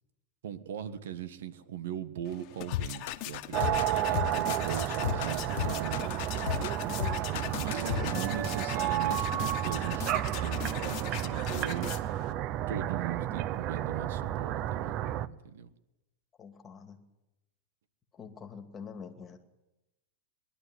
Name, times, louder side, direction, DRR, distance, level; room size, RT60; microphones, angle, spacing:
voice 1, 0.4-6.2 7.2-12.0 12.7-15.0 15.2-15.7 18.2-18.3, right 9 dB, 85° right, 13 dB, 1.4 m, -40 dB
sound 1, 2.3-12.3, left 14 dB, 40° left, 1.5 m, -41 dB
sound 2, 2.7-8.4, left 14 dB, 65° left, 0.6 m, -34 dB
sound 3, 3.5-15.3, right 12 dB, 40° right, 0.6 m, -32 dB
voice 2, 7.9-8.3 16.4-17.0 18.1-19.4, left 6 dB, 20° left, 5 dB, 2.3 m, -44 dB
21.5 x 12.0 x 9.9 m, 0.98 s
supercardioid pair, 150°, 0 cm